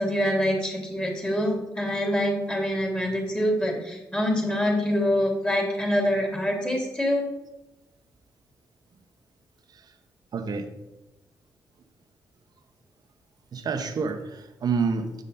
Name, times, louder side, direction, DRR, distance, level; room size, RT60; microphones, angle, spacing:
voice 1, 0.0-7.3, equal, 15° left, 0 dB, 3.1 m, -25 dB
voice 2, 10.3-10.7 13.5-15.2, right 5 dB, 60° right, 7 dB, 1.0 m, -28 dB
7.5 x 6.3 x 4.2 m, 0.98 s
supercardioid pair, 55°, 7 cm